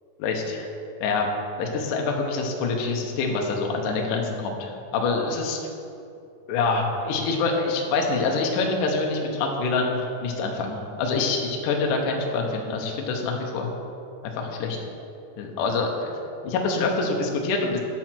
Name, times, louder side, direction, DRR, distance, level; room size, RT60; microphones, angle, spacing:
voice 1, 0.2-0.7 1.0-1.3 1.6-5.6 6.5-13.7 14.2-14.8 15.4-15.9 16.4-17.8, left 3 dB, 75° left, 1 dB, 1.9 m, -26 dB
9.7 x 7.4 x 4.5 m, 2.6 s
omnidirectional pair, 5.1 m